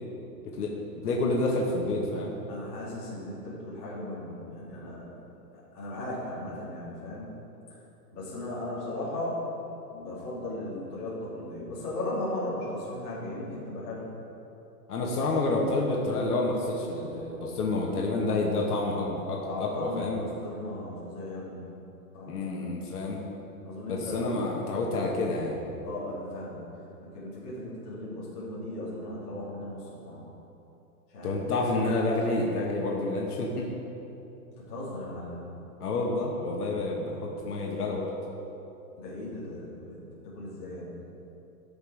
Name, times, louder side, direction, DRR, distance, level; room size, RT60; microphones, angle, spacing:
voice 1, 0.4-2.3 14.9-20.2 22.3-23.2 23.9-25.6 31.2-33.7 35.8-38.1, left 2 dB, 70° left, -2 dB, 1.6 m, -29 dB
voice 2, 2.5-5.2 5.7-7.3 8.1-9.4 9.9-14.0 19.5-20.1 20.4-21.7 22.1-22.4 22.8-23.2 23.6-24.3 25.8-26.6 27.0-30.2 31.1-31.4 34.5-35.5 38.9-41.1, left 1 dB, 20° left, -9 dB, 2.4 m, -37 dB
13.0 x 5.5 x 4.9 m, 2.9 s
hypercardioid pair, 180°, 48 cm